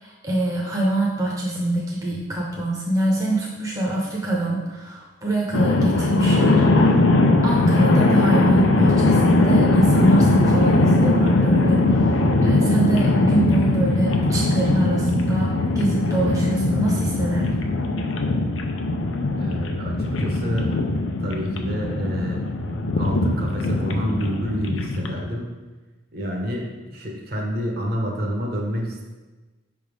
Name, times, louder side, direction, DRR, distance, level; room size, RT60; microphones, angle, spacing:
voice 1, 0.0-7.0 7.4-17.6, right 1 dB, 15° right, -4 dB, 0.7 m, -24 dB
sound 1, 5.5-25.2, left 2 dB, 80° left, 0.6 m, -20 dB
voice 2, 19.4-20.7 21.2-22.4 23.0-25.5 26.1-29.1, equal, 50° right, 0 dB, 1.0 m, -28 dB
5.2 x 3.5 x 5.0 m, 1.2 s
head